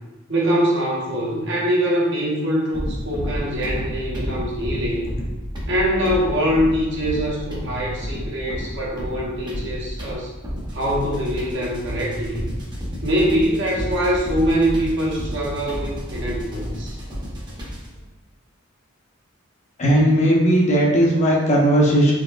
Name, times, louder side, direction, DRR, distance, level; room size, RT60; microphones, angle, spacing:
voice 1, 0.3-5.1 5.7-10.3 10.7-12.5 13.0-17.0, equal, 60° right, -4 dB, 1.0 m, -23 dB
sound 1, 2.7-18.0, equal, 20° right, 0.8 m, -31 dB
voice 2, 19.8-22.1, equal, 35° left, -3 dB, 0.8 m, -17 dB
4.1 x 3.6 x 2.4 m, 1.2 s
head